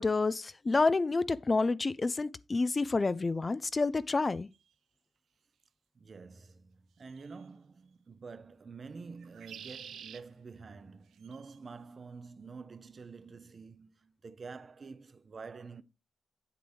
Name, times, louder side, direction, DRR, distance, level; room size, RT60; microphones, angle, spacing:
voice 1, 0.0-4.5, left 3 dB, 40° left, 0.4 m, -29 dB
sound 1, 4.5-4.6 7.1-7.5 9.2-10.2 11.1-11.6, right 8 dB, 90° right, 0.5 m, -49 dB
voice 2, 5.9-15.8, right 4 dB, 55° right, 0.7 m, -48 dB
8.3 x 7.8 x 3.4 m
cardioid pair, 60°, 0 cm